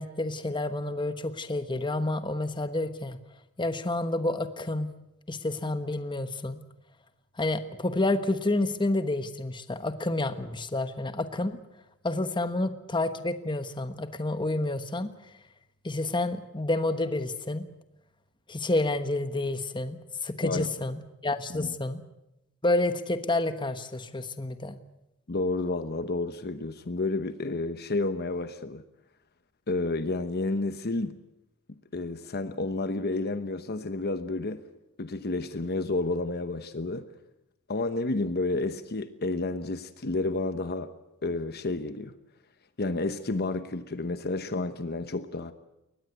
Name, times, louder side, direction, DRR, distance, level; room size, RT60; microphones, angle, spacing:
voice 1, 0.0-3.2 3.6-4.9 5.3-6.6 7.4-11.6 12.0-15.1 15.8-17.7 18.5-22.0 22.6-24.8, left 2 dB, 20° left, 10 dB, 1.2 m, -29 dB
voice 2, 25.3-28.8 29.7-31.2 31.9-34.6 35.0-37.1 37.7-40.9 41.2-42.1 42.8-45.5, left 2 dB, 50° left, 11 dB, 1.0 m, -30 dB
22.5 x 19.5 x 8.1 m, 0.89 s
head